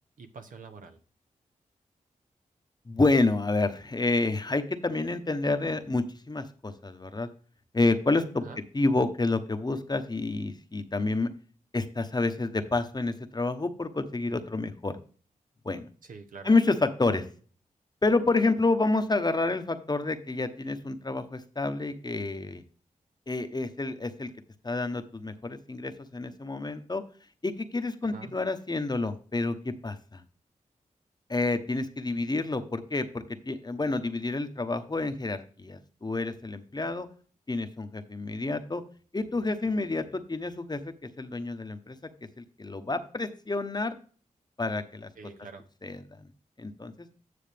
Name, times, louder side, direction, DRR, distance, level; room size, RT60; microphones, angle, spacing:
voice 1, 0.2-1.0 8.4-8.6 16.0-16.5 28.0-28.3 45.2-45.6, right 5 dB, 75° right, 7 dB, 1.1 m, -45 dB
voice 2, 2.9-7.3 7.7-8.4 8.7-11.3 11.7-15.0 15.6-15.9 16.4-17.2 18.0-22.6 23.3-24.3 24.6-27.0 27.4-30.2 31.3-37.1 37.5-38.8 39.1-42.0 42.4-43.9 44.6-45.1 45.8-46.0 46.6-47.1, left 3 dB, 30° left, 9 dB, 1.0 m, -29 dB
9.6 x 6.3 x 3.5 m, 0.41 s
cardioid pair, 45°, 14 cm